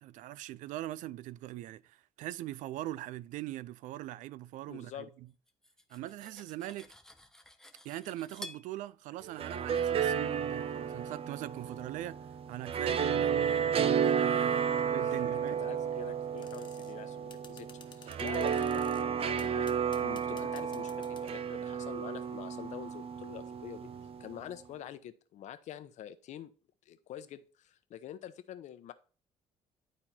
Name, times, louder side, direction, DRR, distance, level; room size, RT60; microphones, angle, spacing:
voice 1, 0.0-5.3 5.9-6.9 7.8-12.2 12.5-15.6, right 15 dB, 80° right, 0.4 m, -42 dB
voice 2, 4.7-5.1 14.0-23.9 24.2-26.5 26.9-28.9, left 11 dB, 65° left, 0.9 m, -46 dB
Cutlery silverware, 5.5-8.7, left 1 dB, 5° left, 0.8 m, -51 dB
sound 1, 9.2-24.4, right 7 dB, 50° right, 0.7 m, -32 dB
sound 2, 16.4-16.9 17.3-19.0 19.4-21.4, left 6 dB, 35° left, 1.2 m, -54 dB
11.0 x 4.3 x 4.3 m
cardioid pair, 120°, 13 cm